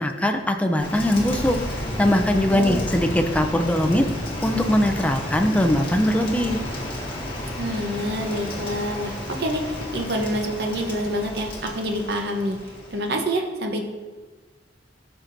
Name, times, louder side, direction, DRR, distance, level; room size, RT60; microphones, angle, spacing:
voice 1, 0.0-4.1 4.4-6.6, left 1 dB, 10° left, 5 dB, 0.5 m, -21 dB
Rain, 0.8-13.2, left 1 dB, 30° left, 1.5 m, -31 dB
voice 2, 2.5-2.8 7.6-12.6 12.9-13.8, equal, 60° right, 3 dB, 0.9 m, -27 dB
12.5 x 5.8 x 2.6 m, 1.4 s
head